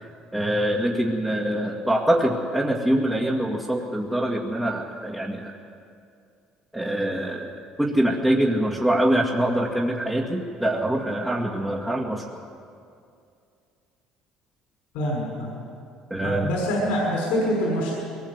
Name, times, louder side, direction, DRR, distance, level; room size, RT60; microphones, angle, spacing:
voice 1, 0.3-5.5 6.7-12.4 16.1-16.5, right 1 dB, 10° right, -3 dB, 2.2 m, -24 dB
voice 2, 14.9-15.6 16.2-17.9, equal, 85° left, -2 dB, 6.0 m, -25 dB
22.0 x 20.0 x 8.1 m, 2.5 s
cardioid pair, 110°, 2 cm